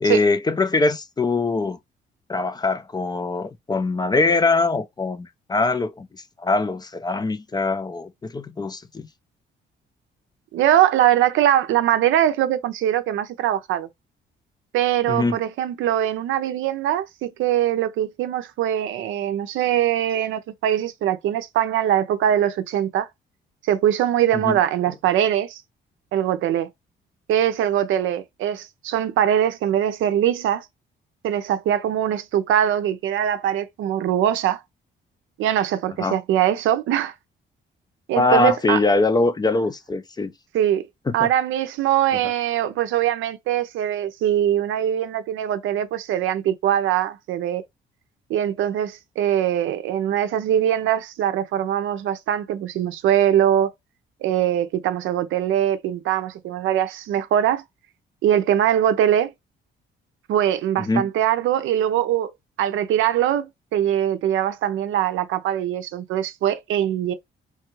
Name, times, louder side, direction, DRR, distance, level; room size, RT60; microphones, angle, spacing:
voice 1, 0.0-1.8 2.3-9.1 15.1-15.4 24.4-24.6 36.0-36.2 38.1-40.3 41.1-41.3 60.8-61.1, left 3 dB, 20° left, 0.4 m, -22 dB
voice 2, 10.5-13.9 14.7-23.1 23.7-25.6 26.1-26.7 27.3-30.7 31.2-34.6 35.4-37.1 38.1-38.8 40.5-40.8 41.1-47.6 48.3-53.7 54.2-57.6 58.2-59.3 60.3-62.3 62.6-67.1, right 11 dB, 80° right, 0.5 m, -22 dB
3.0 x 2.3 x 3.0 m
cardioid pair, 90°, 20 cm